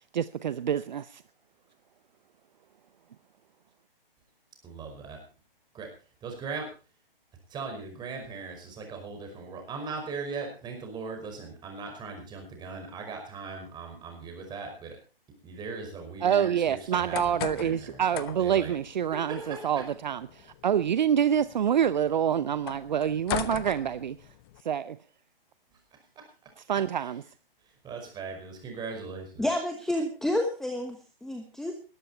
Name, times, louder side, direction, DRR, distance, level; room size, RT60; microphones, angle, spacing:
voice 1, 0.1-1.2 16.2-24.2 24.6-25.0 26.7-27.2, right 9 dB, 50° right, 0.7 m, -27 dB
voice 2, 4.6-5.2 5.7-5.9 6.2-6.7 7.5-15.0 15.4-18.7 19.1-19.8 26.2-26.3 27.0-27.1 27.7-29.5, right 4 dB, 15° right, 5.3 m, -39 dB
sound 1, 16.8-24.6, left 14 dB, 25° left, 0.9 m, -40 dB
voice 3, 29.4-31.8, left 1 dB, ahead, 1.2 m, -30 dB
20.0 x 12.5 x 4.4 m
figure-of-eight pair, 130°, 29 cm